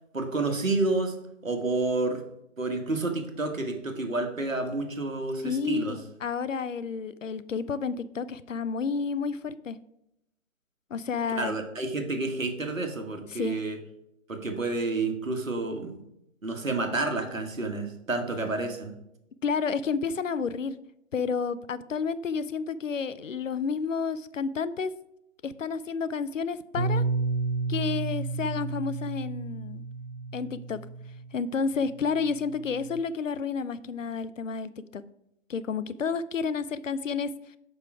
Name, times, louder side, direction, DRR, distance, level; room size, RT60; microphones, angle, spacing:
voice 1, 0.1-1.1 1.4-2.2 2.6-6.0 11.4-13.8 14.3-16.0 16.4-18.9, right 3 dB, 90° right, 5 dB, 1.6 m, -29 dB
voice 2, 5.4-9.8 10.9-11.6 13.3-13.6 19.4-20.8 21.1-24.9 25.4-27.0 27.7-29.8 30.3-30.8 31.3-35.0 35.5-37.3, left 5 dB, 75° left, 15 dB, 0.6 m, -30 dB
Bass guitar, 26.8-31.3 32.0-33.0, right 3 dB, 55° right, 1.0 m, -31 dB
7.0 x 5.5 x 4.7 m, 0.81 s
figure-of-eight pair, 145°, 38 cm